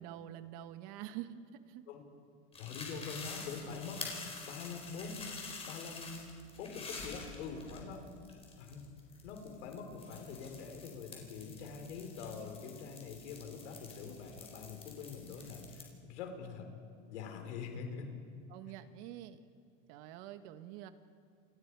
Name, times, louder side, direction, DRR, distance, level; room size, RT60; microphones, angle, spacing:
voice 1, 0.0-1.8 18.5-19.5 19.9-20.9, right 12 dB, 55° right, 9 dB, 1.6 m, -46 dB
sound 1, 2.5-15.8, left 4 dB, 15° left, 4.3 m, -48 dB
voice 2, 2.6-4.0 4.4-5.2 5.6-6.2 6.6-8.0 8.6-8.8 9.2-16.7 17.1-18.1, left 5 dB, 85° left, 4 dB, 4.4 m, -44 dB
29.0 x 28.5 x 4.9 m, 2.3 s
supercardioid pair, 150°, 34 cm